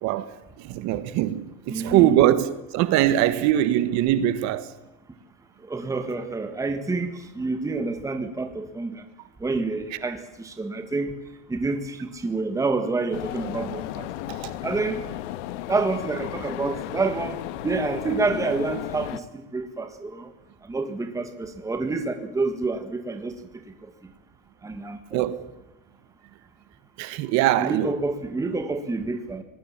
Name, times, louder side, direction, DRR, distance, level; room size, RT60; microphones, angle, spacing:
voice 1, 0.0-4.7 14.3-14.5 25.1-25.5 27.0-27.9, right 13 dB, 50° right, 1.4 m, -22 dB
voice 2, 1.7-2.2 5.6-9.0 9.4-11.1 11.5-14.1 14.6-15.0 15.7-20.3 20.7-23.4 23.8-23.9 24.6-25.3 27.6-29.4, right 3 dB, 10° right, 1.7 m, -28 dB
sound 1, 13.1-19.2, left 14 dB, 90° left, 1.4 m, -34 dB
24.5 x 19.5 x 7.3 m
cardioid pair, 155°, 35 cm